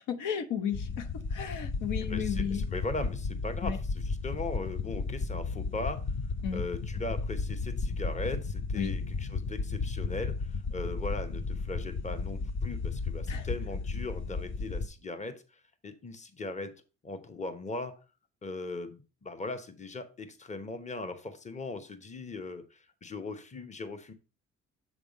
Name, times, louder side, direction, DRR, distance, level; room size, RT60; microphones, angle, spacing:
voice 1, 0.1-2.6 3.6-3.8 6.4-6.6 8.8-8.9 13.3-13.5, left 8 dB, 90° left, 0.9 m, -34 dB
sound 1, 0.7-14.9, left 4 dB, 40° left, 0.7 m, -34 dB
voice 2, 2.1-6.0 6.5-15.3 15.8-16.7 17.0-17.9 18.4-24.1, left 2 dB, 25° left, 1.0 m, -39 dB
7.1 x 3.5 x 5.2 m
cardioid pair, 90°, 30 cm